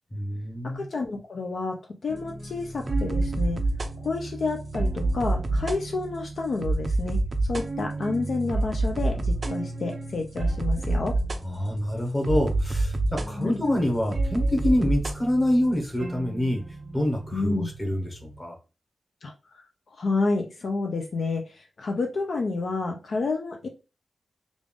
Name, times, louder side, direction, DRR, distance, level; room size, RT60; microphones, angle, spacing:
voice 1, 0.1-0.8 11.4-16.6 16.9-18.5, left 1 dB, 15° left, 1 dB, 1.1 m, -26 dB
voice 2, 0.6-3.6 4.0-7.2 7.5-11.2 13.4-13.6 17.3-17.7 19.2-19.3 19.9-23.7, left 3 dB, 55° left, 2 dB, 0.5 m, -29 dB
sound 1, 2.1-18.4, right 2 dB, 30° right, 0.4 m, -29 dB
3.4 x 2.5 x 3.5 m, 0.31 s
wide cardioid pair, 155°, 0 cm